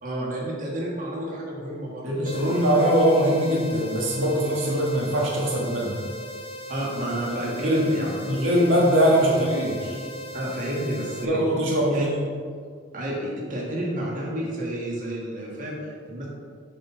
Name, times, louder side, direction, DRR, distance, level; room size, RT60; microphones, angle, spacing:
voice 1, 0.0-2.6 6.7-8.6 9.3-9.4 10.3-11.4 11.9-12.1 12.9-16.3, right 1 dB, 45° right, -4 dB, 1.6 m, -31 dB
voice 2, 2.0-6.0 7.4-10.0 11.2-12.2, equal, 85° right, -3 dB, 1.6 m, -22 dB
sound 1, 2.3-11.3, equal, 30° left, 0.5 m, -38 dB
7.9 x 4.3 x 5.6 m, 2.1 s
head